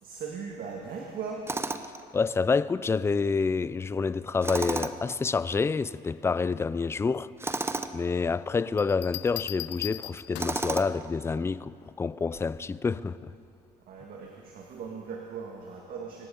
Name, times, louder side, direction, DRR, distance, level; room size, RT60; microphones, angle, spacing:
voice 1, 0.0-1.5 13.9-16.3, right 5 dB, 60° right, 1.8 m, -39 dB
Tools, 1.5-2.0 4.4-5.1 7.4-8.0 10.4-11.1, right 3 dB, 15° right, 0.7 m, -32 dB
voice 2, 2.1-7.3 7.9-13.3, left 4 dB, 15° left, 0.3 m, -28 dB
Bell, 8.8-10.7 12.3-12.7, left 17 dB, 85° left, 0.6 m, -39 dB
24.5 x 10.5 x 5.2 m
cardioid pair, 110°, 17 cm